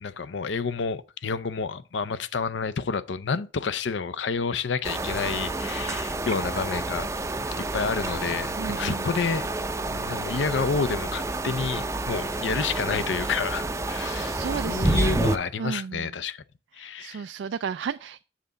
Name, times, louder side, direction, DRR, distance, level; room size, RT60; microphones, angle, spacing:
voice 1, 0.0-7.1 7.6-9.5 9.9-14.4 14.7-16.4 16.8-17.2, left 5 dB, 85° left, 0.6 m, -29 dB
sound 1, 4.8-15.4, right 2 dB, 15° right, 0.5 m, -29 dB
voice 2, 8.6-9.1 14.0-15.1 15.6-16.1 16.8-18.2, right 6 dB, 80° right, 0.3 m, -34 dB
7.5 x 6.8 x 3.8 m
head